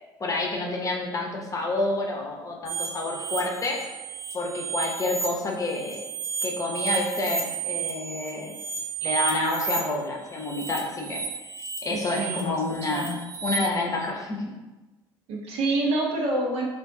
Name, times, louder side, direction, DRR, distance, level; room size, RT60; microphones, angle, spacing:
voice 1, 0.2-3.9 4.3-6.0 6.4-8.5 9.0-11.2 11.8-13.1 13.4-14.5, left 2 dB, 25° left, 0 dB, 0.9 m, -28 dB
sound 1, 2.7-5.2 5.6-9.8 10.3-13.5, right 6 dB, 20° right, 1.3 m, -33 dB
voice 2, 11.9-12.6 12.9-13.2 15.3-16.7, right 2 dB, 55° right, -1 dB, 1.0 m, -27 dB
4.3 x 2.6 x 3.8 m, 1.1 s
figure-of-eight pair, 60°, 12 cm